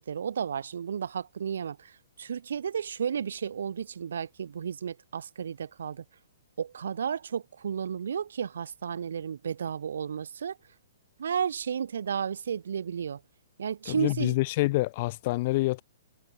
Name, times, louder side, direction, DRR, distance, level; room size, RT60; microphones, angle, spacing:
voice 1, 0.0-6.0 6.6-10.6 11.2-13.2 13.6-14.4, right 7 dB, 65° right, 1.2 m, -33 dB
voice 2, 13.9-15.8, left 20 dB, 40° left, 0.8 m, -27 dB
figure-of-eight pair, 120°, 0 cm